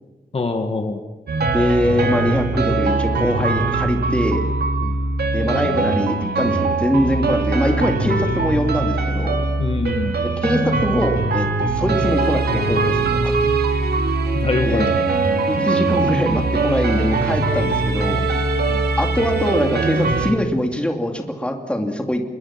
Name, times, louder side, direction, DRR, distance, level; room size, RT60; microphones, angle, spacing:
voice 1, 0.3-1.0 4.8-5.0 8.0-8.2 9.6-10.2 14.3-14.9 18.7-18.9, left 3 dB, 40° left, 5 dB, 2.0 m, -24 dB
sound 1, 1.3-20.3, right 3 dB, 90° right, 3.2 m, -21 dB
voice 2, 1.5-4.4 5.3-9.4 10.2-13.4 14.6-14.9 15.5-18.2 19.0-22.2, left 1 dB, 5° left, 3 dB, 2.6 m, -22 dB
27.0 x 22.0 x 6.0 m, 1.2 s
wide cardioid pair, 145°, 16 cm